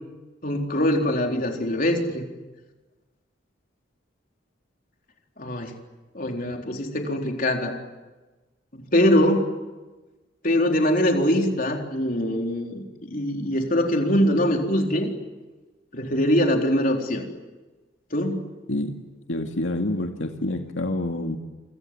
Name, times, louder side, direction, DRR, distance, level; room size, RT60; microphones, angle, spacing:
voice 1, 0.4-2.2 5.4-5.7 6.1-7.7 8.7-9.5 10.4-15.1 15.9-17.2 18.1-18.4, left 1 dB, 45° left, 2 dB, 4.0 m, -23 dB
voice 2, 19.3-21.4, left 1 dB, 90° left, 3 dB, 2.3 m, -27 dB
29.0 x 25.5 x 7.8 m, 1.2 s
head